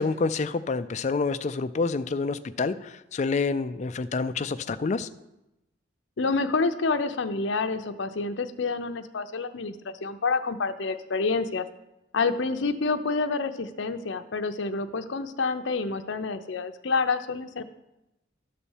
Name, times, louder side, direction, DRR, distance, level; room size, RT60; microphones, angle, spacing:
voice 1, 0.0-5.1, left 4 dB, 40° left, 12 dB, 0.3 m, -28 dB
voice 2, 6.2-11.6 12.1-17.6, left 4 dB, 75° left, 8 dB, 0.6 m, -28 dB
12.0 x 4.2 x 7.2 m, 0.94 s
head